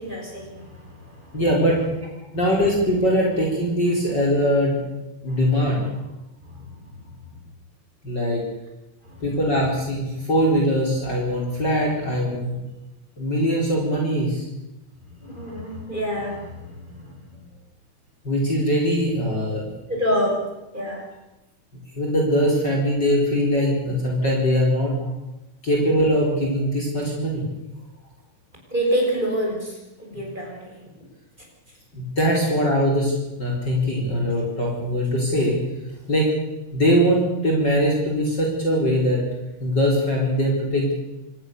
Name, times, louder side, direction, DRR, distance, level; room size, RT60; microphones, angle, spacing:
voice 1, 0.0-1.4 5.3-5.4 5.7-5.8 6.4-7.2 9.0-9.4 11.5-11.6 15.2-17.5 19.3-19.6 19.9-20.4 20.7-21.0 23.6-23.7 28.7-30.8, equal, 15° right, -1 dB, 6.5 m, -28 dB
voice 2, 1.3-1.9 2.3-4.8 5.2-5.9 8.0-8.4 9.2-12.6 13.2-14.5 18.2-19.6 21.9-25.0 25.6-27.5 30.1-30.2 31.9-35.6 36.1-36.3 36.7-39.2 39.6-40.9, equal, 35° left, -1 dB, 4.9 m, -21 dB
25.5 x 19.5 x 6.8 m, 0.97 s
omnidirectional pair, 3.5 m